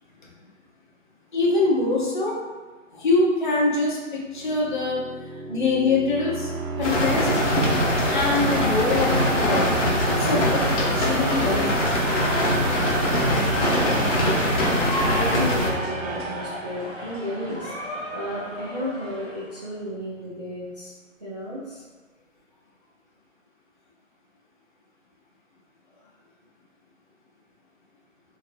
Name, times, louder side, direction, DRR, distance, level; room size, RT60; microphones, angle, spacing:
voice 1, 1.3-2.4 2.9-5.0 5.5-6.5 6.8-7.4 8.1-9.7 10.2-11.9, left 3 dB, 40° left, -3 dB, 0.6 m, -24 dB
sound 1, 4.3-17.2, right 3 dB, 85° right, 0.6 m, -32 dB
sound 2, 6.8-15.7, left 1 dB, 60° left, 1.1 m, -22 dB
sound 3, 11.4-19.7, equal, 10° left, 1.5 m, -35 dB
voice 2, 15.2-20.9 21.2-21.8, equal, 35° right, -9 dB, 0.5 m, -33 dB
2.9 x 2.8 x 2.5 m, 1.3 s
hypercardioid pair, 165°, 39 cm